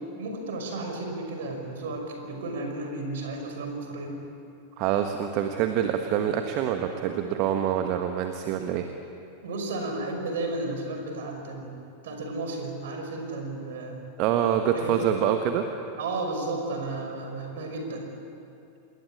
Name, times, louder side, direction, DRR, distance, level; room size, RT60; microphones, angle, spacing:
voice 1, 0.2-4.2 9.4-11.8 12.0-14.0 14.7-15.1 16.0-18.0, right 2 dB, 60° right, 3 dB, 5.6 m, -33 dB
voice 2, 4.8-8.9 14.2-15.6, right 9 dB, 40° right, 6 dB, 1.5 m, -26 dB
27.5 x 21.5 x 8.8 m, 2.6 s
figure-of-eight pair, 90°, 0 cm